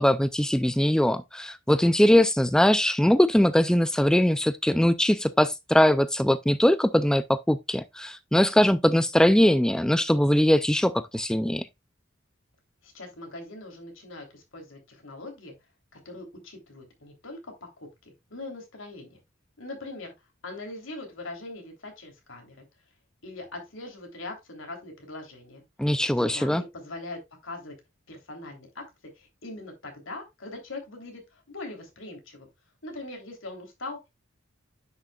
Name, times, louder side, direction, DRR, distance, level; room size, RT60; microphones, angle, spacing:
voice 1, 0.0-11.7 25.8-26.6, left 1 dB, 5° left, 0.3 m, -21 dB
voice 2, 12.8-15.5 15.9-19.2 19.6-20.1 20.4-22.6 23.2-25.6 26.2-27.8 28.1-28.8 29.2-32.5 32.8-34.1, left 2 dB, 80° left, 3.3 m, -41 dB
10.0 x 6.4 x 2.3 m
head